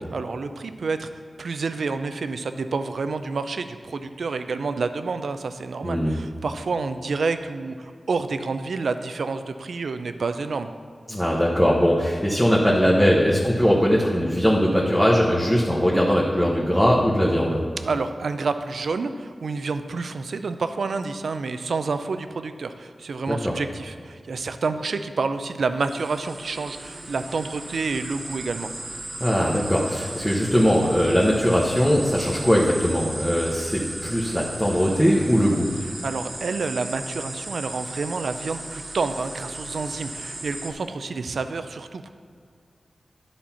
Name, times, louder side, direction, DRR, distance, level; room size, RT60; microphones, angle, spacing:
voice 1, 0.1-1.1 1.4-10.7 17.8-28.7 36.0-42.1, right 4 dB, 80° right, 9 dB, 0.4 m, -29 dB
voice 2, 5.8-6.2 11.1-17.6 23.3-23.5 29.2-35.7, equal, 5° left, -5 dB, 1.1 m, -20 dB
sound 1, 25.9-40.7, right 2 dB, 50° right, 1.3 m, -36 dB
11.0 x 4.4 x 5.6 m, 2.2 s
wide cardioid pair, 80°, 0 cm